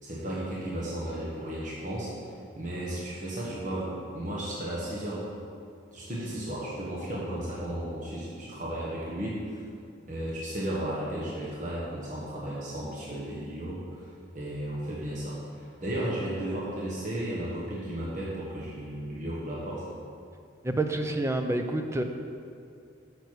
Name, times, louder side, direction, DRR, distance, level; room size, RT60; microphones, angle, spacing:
voice 1, 0.0-5.3 5.9-9.6 10.1-19.8, right 1 dB, 40° right, -6 dB, 1.4 m, -34 dB
voice 2, 20.6-22.0, right 2 dB, 15° right, 5 dB, 0.5 m, -28 dB
8.9 x 6.8 x 4.8 m, 2.4 s
head